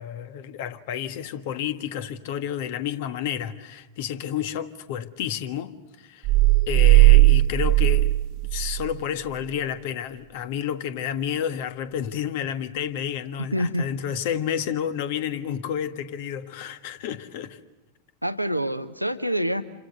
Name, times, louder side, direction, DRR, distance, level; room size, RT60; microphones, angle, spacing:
voice 1, 0.0-5.7 6.0-6.3 6.7-8.2 8.5-17.6, left 9 dB, 50° left, 1.4 m, -30 dB
sound 1, 6.2-9.0, right 19 dB, 40° right, 0.9 m, -17 dB
voice 2, 13.5-13.9 18.2-19.6, equal, 90° right, 0.9 m, -26 dB
29.0 x 26.5 x 6.8 m
figure-of-eight pair, 90°, 0 cm